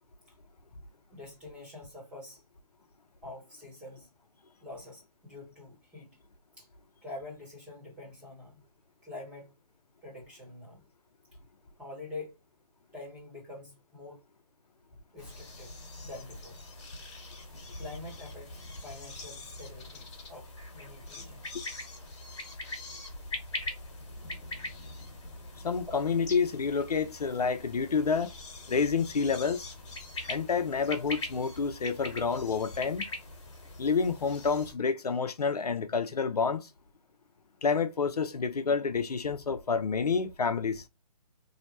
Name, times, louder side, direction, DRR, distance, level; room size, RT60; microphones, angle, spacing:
voice 1, 1.1-2.4 3.2-4.1 4.6-6.2 6.6-6.7 7.0-8.5 9.0-9.5 10.0-10.8 11.8-12.3 12.9-14.2 15.1-15.7 16.0-16.6 17.8-21.6, left 2 dB, 5° right, 1.0 m, -46 dB
sound 1, 15.2-34.7, left 2 dB, 50° left, 1.2 m, -42 dB
voice 2, 25.6-28.3 28.7-29.7 30.3-33.0 33.8-36.7 37.6-40.8, left 5 dB, 80° left, 0.6 m, -29 dB
2.8 x 2.1 x 4.0 m
hypercardioid pair, 155°, 20 cm